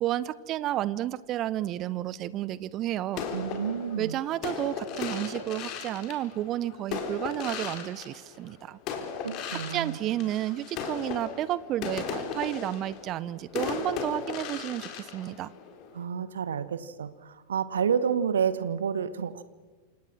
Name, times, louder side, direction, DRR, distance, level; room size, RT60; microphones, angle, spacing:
voice 1, 0.0-3.3 4.0-8.8 9.5-15.5, right 13 dB, 35° right, 20 dB, 0.8 m, -31 dB
sound 1, 3.1-8.5 8.9-16.0, left 6 dB, 40° left, 4.0 m, -36 dB
voice 2, 3.3-4.2 9.2-10.0 15.9-19.4, right 7 dB, 65° right, 14 dB, 1.4 m, -29 dB
28.0 x 26.0 x 6.3 m, 1.3 s
figure-of-eight pair, 90°, 0 cm